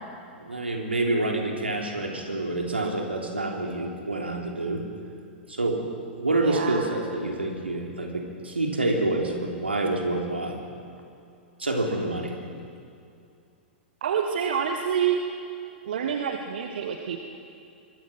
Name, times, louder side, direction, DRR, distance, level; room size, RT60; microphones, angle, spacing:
voice 1, 0.3-4.9 5.5-5.8 6.2-10.6 11.6-12.3, right 2 dB, 80° right, 1 dB, 3.4 m, -27 dB
voice 2, 6.4-6.9 14.0-15.2 15.8-17.2, right 8 dB, 60° right, 4 dB, 1.5 m, -27 dB
24.5 x 22.0 x 6.2 m, 2.5 s
figure-of-eight pair, 100°, 6 cm